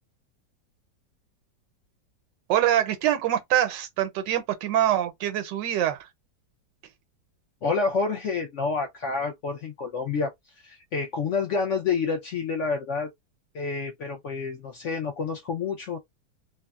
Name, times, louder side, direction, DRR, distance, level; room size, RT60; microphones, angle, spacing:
voice 1, 2.5-6.1, right 11 dB, 85° right, 1.3 m, -24 dB
voice 2, 7.6-13.1 13.5-16.0, left 4 dB, 75° left, 0.7 m, -28 dB
3.4 x 2.0 x 2.3 m
omnidirectional pair, 1.9 m